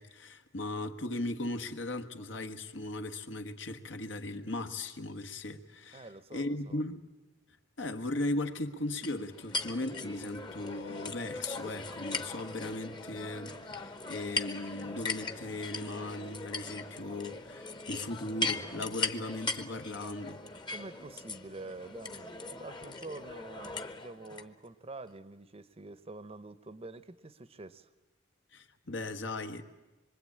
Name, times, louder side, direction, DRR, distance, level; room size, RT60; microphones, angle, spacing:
voice 1, 0.0-7.0 7.8-20.4 28.5-29.6, left 2 dB, 75° left, 1.5 m, -37 dB
voice 2, 5.9-6.8 20.7-27.9, right 2 dB, 30° right, 0.8 m, -47 dB
sound 1, 9.0-24.5, left 3 dB, 25° left, 1.0 m, -39 dB
25.5 x 23.5 x 8.6 m
head